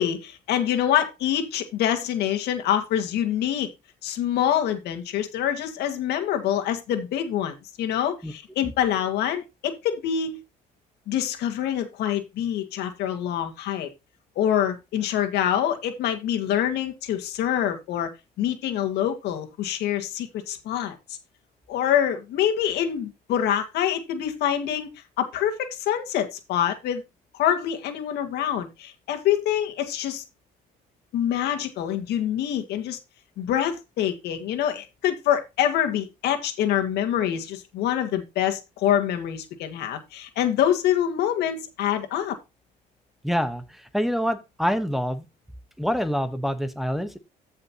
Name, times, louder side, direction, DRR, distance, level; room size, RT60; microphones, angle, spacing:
voice 1, 0.0-3.7 4.0-10.4 11.1-13.9 14.4-18.1 18.4-21.2 21.7-24.9 25.2-27.0 27.4-30.2 31.1-33.0 33.4-42.4, left 10 dB, 80° left, 6 dB, 1.8 m, -25 dB
voice 2, 43.2-43.6 43.9-45.2 45.8-47.2, equal, ahead, 8 dB, 1.1 m, -26 dB
14.0 x 5.6 x 2.9 m, 0.24 s
cardioid pair, 110°, 17 cm